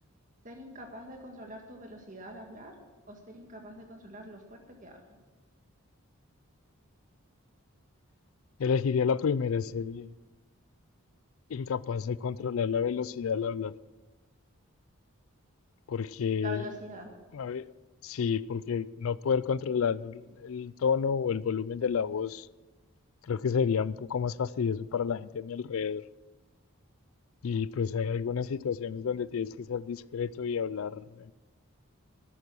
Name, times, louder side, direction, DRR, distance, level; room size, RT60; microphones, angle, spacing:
voice 1, 0.4-2.8 3.1-5.2 16.4-17.1, equal, 35° right, 1.8 m, -44 dB
voice 2, 8.6-10.1 11.5-13.7 15.9-16.6 17.3-17.7 18.0-22.5 23.2-26.0 27.4-31.3, left 6 dB, 70° left, 0.4 m, -30 dB
12.5 x 12.5 x 6.2 m
head